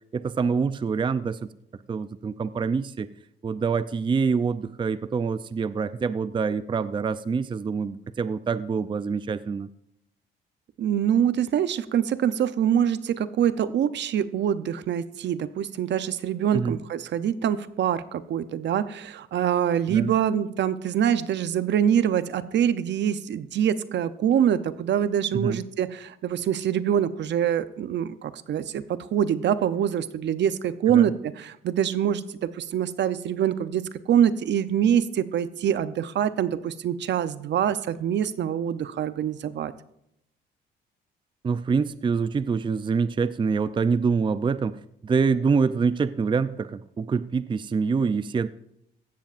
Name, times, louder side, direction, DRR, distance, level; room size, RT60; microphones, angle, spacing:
voice 1, 0.1-1.4 1.9-3.1 3.4-9.7 16.5-16.8 19.9-20.1 25.3-25.6 30.9-31.1 41.4-44.8 45.0-48.5, right 5 dB, 25° right, 14 dB, 0.4 m, -25 dB
voice 2, 10.8-33.8 34.1-39.7, right 9 dB, 65° right, 13 dB, 0.7 m, -25 dB
16.0 x 13.0 x 2.5 m, 0.79 s
cardioid pair, 90°, 20 cm